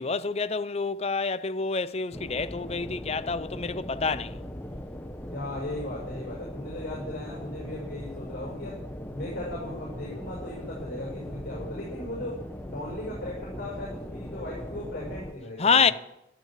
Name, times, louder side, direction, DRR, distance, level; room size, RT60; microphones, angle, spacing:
voice 1, 0.0-4.4 15.6-15.9, left 5 dB, 30° left, 0.6 m, -27 dB
sound 1, 2.1-15.3, equal, 10° left, 0.9 m, -39 dB
voice 2, 5.3-8.8 9.1-15.9, left 1 dB, 50° left, 5.8 m, -37 dB
13.0 x 12.5 x 7.4 m
head